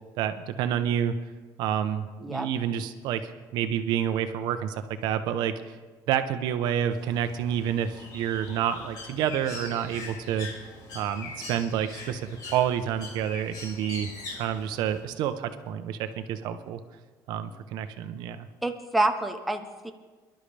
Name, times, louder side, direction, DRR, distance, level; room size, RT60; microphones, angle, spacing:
voice 1, 0.2-1.1 1.6-3.2 3.5-5.5 6.1-10.5 10.9-16.8 17.3-18.5, right 9 dB, 65° right, 9 dB, 0.8 m, -29 dB
Bird, 6.9-15.0, left 3 dB, 55° left, 4.2 m, -42 dB
voice 2, 18.6-19.9, right 2 dB, ahead, 4 dB, 0.6 m, -27 dB
24.0 x 11.5 x 3.4 m, 1.4 s
cardioid pair, 170°, 8 cm